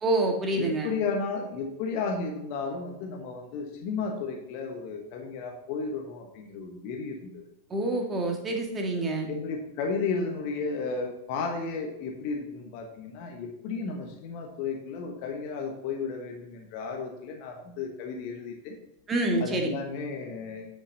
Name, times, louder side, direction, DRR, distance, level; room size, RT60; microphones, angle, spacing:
voice 1, 0.0-0.9 7.7-9.3 19.1-19.7, right 2 dB, 20° right, 2 dB, 1.8 m, -27 dB
voice 2, 0.6-7.4 9.2-18.7 19.4-20.7, left 4 dB, 45° left, 2 dB, 1.2 m, -33 dB
9.8 x 5.9 x 4.0 m, 0.84 s
figure-of-eight pair, 90°, 0 cm